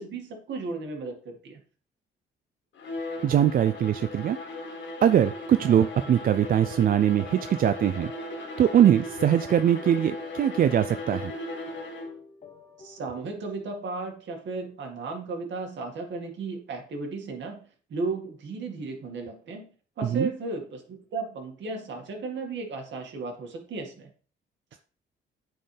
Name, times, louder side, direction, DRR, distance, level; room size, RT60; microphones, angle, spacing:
voice 1, 0.0-1.6 12.8-17.6 17.9-19.7 20.0-24.1, right 3 dB, 65° right, 2 dB, 2.1 m, -35 dB
Bowed string instrument, 2.7-12.2, left 2 dB, 70° left, 1.8 m, -37 dB
voice 2, 3.2-4.4 5.0-8.1 8.6-11.3 20.1-20.3, right 10 dB, 45° right, 11 dB, 0.4 m, -22 dB
sound 1, 5.1-13.2, left 3 dB, 35° left, 1.1 m, -50 dB
9.0 x 4.5 x 3.4 m, 0.41 s
cardioid pair, 90°, 20 cm